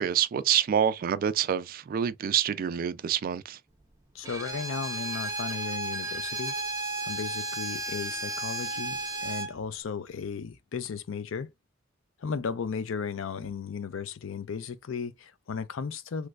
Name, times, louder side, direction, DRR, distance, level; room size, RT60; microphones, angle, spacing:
voice 1, 0.0-3.6, right 9 dB, 45° right, 0.3 m, -27 dB
voice 2, 4.1-6.6 7.0-11.5 12.2-16.3, left 6 dB, 80° left, 0.5 m, -35 dB
Bowed string instrument, 4.2-9.5, right 2 dB, 15° right, 0.6 m, -33 dB
3.2 x 3.1 x 2.3 m
head